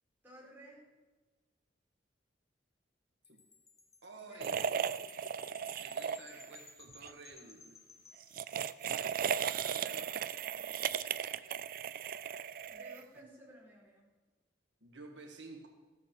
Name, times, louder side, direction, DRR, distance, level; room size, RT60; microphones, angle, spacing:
voice 1, 0.2-0.8 4.2-4.7 12.7-14.1, right 1 dB, 10° right, -5 dB, 3.9 m, -56 dB
Wind chime, 3.2-8.9, left 4 dB, 15° left, 0.8 m, -58 dB
voice 2, 4.0-4.6 5.8-7.8 9.4-10.1 14.8-15.7, right 3 dB, 85° right, 2 dB, 1.7 m, -52 dB
sound 1, 4.4-6.6 6.9-7.1 8.2-13.2, right 7 dB, 50° right, 0.4 m, -36 dB
14.0 x 8.0 x 6.0 m, 1.2 s
head